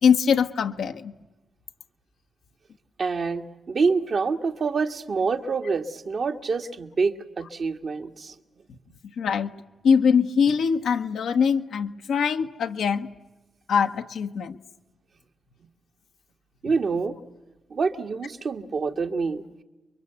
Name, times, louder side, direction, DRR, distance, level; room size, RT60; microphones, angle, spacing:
voice 1, 0.0-1.1 9.2-9.5 9.8-13.1 13.7-14.6, left 6 dB, 75° left, 6 dB, 1.1 m, -22 dB
voice 2, 3.0-8.3 16.6-17.2 17.7-19.4, right 4 dB, 60° right, 4 dB, 1.7 m, -26 dB
29.5 x 23.0 x 8.1 m, 1.1 s
supercardioid pair, 45°, 0 cm